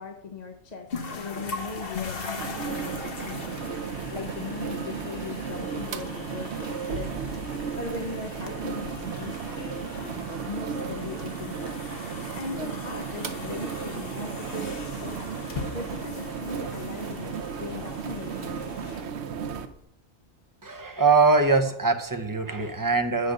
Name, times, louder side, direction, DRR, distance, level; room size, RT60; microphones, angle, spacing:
voice 1, 0.0-3.7 4.1-11.8 12.3-19.0, left 4 dB, 40° left, 3 dB, 0.8 m, -39 dB
sound 1, 0.9-19.8, left 4 dB, 55° left, 1.1 m, -40 dB
sound 2, 2.4-19.7, right 6 dB, 70° right, 1.0 m, -34 dB
voice 2, 20.6-23.3, right 4 dB, 20° right, 5 dB, 0.7 m, -22 dB
8.4 x 5.0 x 6.5 m, 0.74 s
omnidirectional pair, 1.2 m